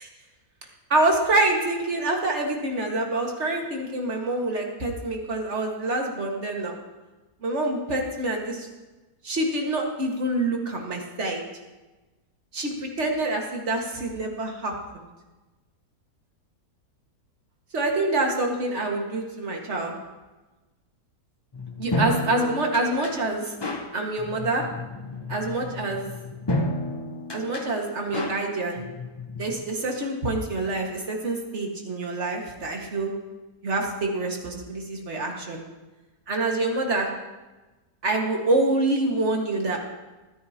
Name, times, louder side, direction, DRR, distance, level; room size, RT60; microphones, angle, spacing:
voice 1, 0.9-6.7 7.4-8.7 9.2-11.4 12.5-14.7 17.7-19.9 21.8-23.5 23.9-24.6 25.3-26.1 27.3-28.8 29.4-33.1 33.6-35.6 36.3-37.1 38.0-39.8, right 2 dB, 45° right, 1 dB, 2.0 m, -26 dB
sound 1, 21.5-29.6, left 1 dB, 25° left, 0.5 m, -32 dB
23.5 x 9.5 x 2.9 m, 1.1 s
omnidirectional pair, 1.7 m